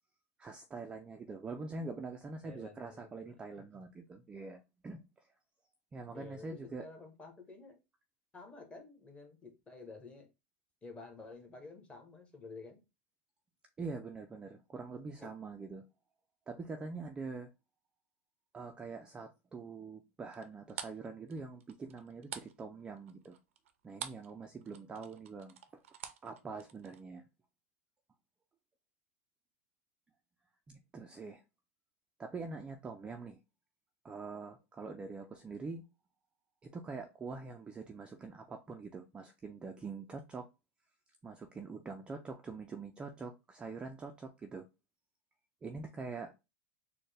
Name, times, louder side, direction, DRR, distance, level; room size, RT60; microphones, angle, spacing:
voice 1, 0.4-5.0 5.9-6.8 13.8-15.8 16.5-17.5 18.5-23.4 23.8-25.8 26.2-27.2 30.7-31.4 32.2-33.4 34.0-35.8 36.6-40.5 41.2-44.7 45.6-46.3, right 4 dB, 15° right, 0.3 m, -44 dB
voice 2, 2.4-3.8 6.1-7.8 8.3-10.3 10.8-12.8 14.9-15.3, left 3 dB, 15° left, 0.9 m, -51 dB
sound 1, 20.3-24.3 24.6-27.0, right 9 dB, 85° right, 0.5 m, -47 dB
4.2 x 2.1 x 3.3 m
supercardioid pair, 135°, 7 cm